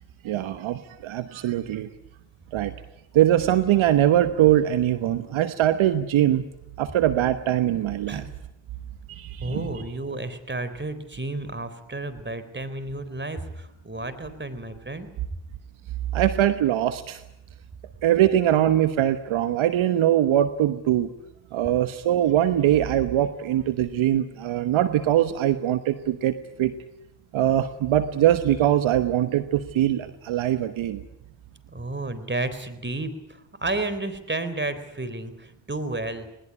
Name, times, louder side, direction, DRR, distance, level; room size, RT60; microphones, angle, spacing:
voice 1, 0.2-1.9 2.5-2.7 3.1-6.4 6.8-8.2 9.1-9.7 16.1-17.2 18.0-21.1 21.5-26.7 27.3-31.0, right 12 dB, 70° right, 11 dB, 1.2 m, -22 dB
voice 2, 9.4-15.1 31.7-36.3, right 2 dB, 20° right, 12 dB, 4.0 m, -32 dB
20.5 x 20.0 x 9.9 m, 0.86 s
hypercardioid pair, 45°, 49 cm